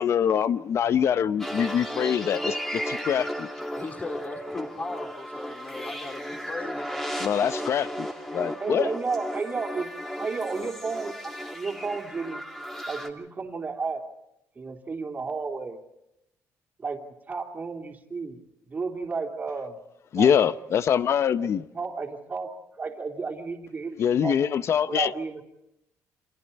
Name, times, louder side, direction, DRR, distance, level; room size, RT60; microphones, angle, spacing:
voice 1, 0.0-3.5 7.2-8.9 20.1-21.6 24.0-25.1, left 8 dB, 55° left, 0.8 m, -24 dB
sound 1, 1.4-13.1, equal, 5° left, 2.7 m, -35 dB
voice 2, 3.7-7.1, left 3 dB, 30° left, 3.4 m, -37 dB
voice 3, 8.6-9.9 10.2-12.4 12.9-14.0 14.6-15.8 16.8-17.0 17.3-18.4 18.7-19.8 20.1-20.4 21.4-21.5 21.7-24.4 24.9-25.4, right 4 dB, 30° right, 3.0 m, -32 dB
29.5 x 25.0 x 4.2 m
cardioid pair, 110°, 6 cm